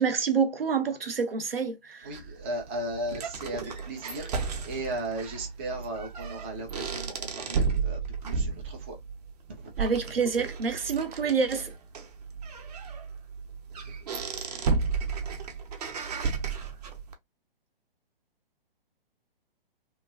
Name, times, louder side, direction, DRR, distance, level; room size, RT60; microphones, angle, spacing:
voice 1, 0.0-2.2 9.8-11.7, right 5 dB, 80° right, 0.7 m, -27 dB
voice 2, 2.0-9.0 9.6-9.7, right 1 dB, 15° right, 0.3 m, -36 dB
sound 1, 2.1-17.1, right 5 dB, 45° right, 0.7 m, -33 dB
2.9 x 2.3 x 2.3 m
figure-of-eight pair, 125°, 29 cm